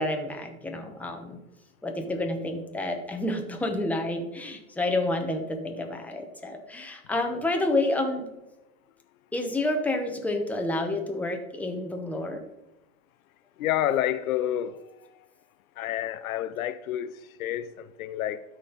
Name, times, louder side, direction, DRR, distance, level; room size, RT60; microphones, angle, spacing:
voice 1, 0.0-1.4 1.8-8.3 9.3-12.4, left 2 dB, 5° left, 0.9 m, -29 dB
voice 2, 13.6-14.8 15.8-18.4, left 12 dB, 75° left, 0.6 m, -29 dB
12.5 x 4.5 x 3.9 m
hypercardioid pair, 115°, 42 cm